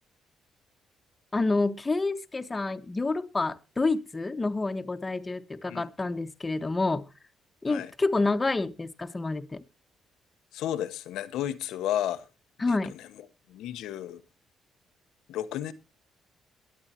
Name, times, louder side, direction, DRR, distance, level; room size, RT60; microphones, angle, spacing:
voice 1, 1.3-7.1 7.6-9.6 12.6-12.9, left 3 dB, 25° left, 1.3 m, -28 dB
voice 2, 10.5-12.3 12.7-14.2 15.3-15.7, left 11 dB, 85° left, 1.0 m, -33 dB
22.5 x 8.8 x 2.9 m
supercardioid pair, 65°, 0 cm